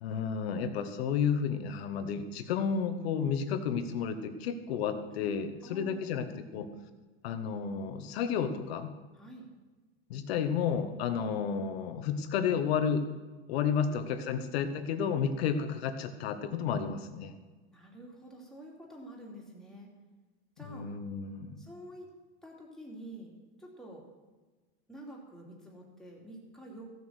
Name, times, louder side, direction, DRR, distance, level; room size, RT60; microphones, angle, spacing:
voice 1, 0.0-6.3 6.5-6.7 7.2-8.9 10.1-13.0 13.5-17.3 20.7-21.6, left 7 dB, 80° left, 9 dB, 1.4 m, -31 dB
voice 2, 5.6-6.7 9.1-9.5 13.8-14.4 17.7-19.9 20.6-20.9 21.6-22.1 22.4-23.3 23.6-24.0 24.9-26.9, right 1 dB, ahead, -3 dB, 2.7 m, -48 dB
15.0 x 7.1 x 6.4 m, 1.3 s
supercardioid pair, 145°, 31 cm